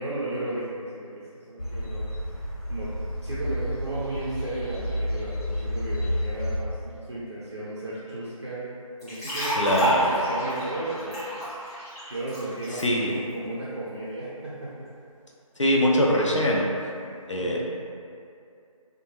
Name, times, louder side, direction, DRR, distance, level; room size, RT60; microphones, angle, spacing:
voice 1, 0.0-2.1 2.7-2.9 3.2-8.7 9.0-11.4 12.1-14.9 17.3-17.7, right 1 dB, 50° right, -10 dB, 0.5 m, -34 dB
sound 1, 1.6-6.6, equal, 90° left, 1.0 m, -30 dB
sound 2, 9.0-12.8, equal, 10° left, 0.9 m, -29 dB
voice 2, 9.5-10.0 12.8-13.2 15.6-16.7 17.3-17.7, equal, 55° left, -2 dB, 0.5 m, -22 dB
2.7 x 2.2 x 2.9 m, 2.4 s
figure-of-eight pair, 180°, 18 cm